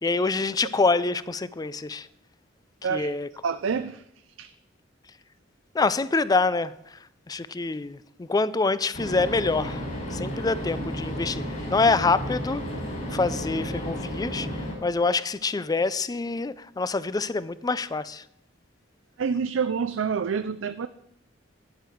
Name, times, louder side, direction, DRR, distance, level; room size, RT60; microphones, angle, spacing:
voice 1, 0.0-2.1 2.9-3.3 5.7-7.0 7.3-9.8 10.1-12.6 13.1-18.2, left 3 dB, 20° left, 0.4 m, -26 dB
voice 2, 3.4-4.0 4.4-4.5 19.2-20.9, right 6 dB, 85° right, 0.4 m, -27 dB
sound 1, 8.9-14.7, equal, 40° left, 4.8 m, -32 dB
11.5 x 10.5 x 4.6 m
head